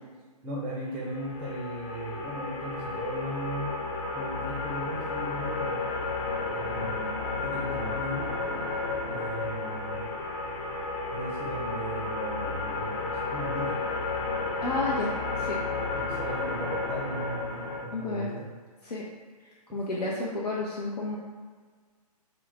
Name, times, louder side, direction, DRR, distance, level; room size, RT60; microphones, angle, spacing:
voice 1, 0.4-3.8 4.1-5.9 6.5-8.6 9.1-10.1 11.1-13.8 15.9-18.5, right 1 dB, 10° right, -4 dB, 0.4 m, -37 dB
sound 1, 1.0-17.8, left 3 dB, 40° left, 0.6 m, -32 dB
voice 2, 14.6-15.1 15.3-15.6 17.9-18.3 18.8-19.0 19.7-21.2, left 2 dB, 90° left, -5 dB, 0.6 m, -31 dB
3.3 x 2.2 x 3.8 m, 1.5 s
figure-of-eight pair, 130°, 20 cm